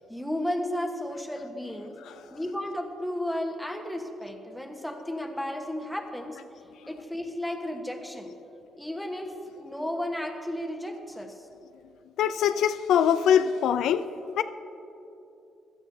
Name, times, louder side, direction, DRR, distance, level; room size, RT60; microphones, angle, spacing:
voice 1, 0.1-2.0 2.3-6.4 6.9-8.3 8.7-11.5, left 1 dB, 5° left, 3 dB, 1.2 m, -33 dB
voice 2, 12.2-14.0 14.4-14.5, left 9 dB, 80° left, 11 dB, 0.3 m, -22 dB
16.0 x 12.0 x 2.7 m, 2.8 s
cardioid pair, 90°, 0 cm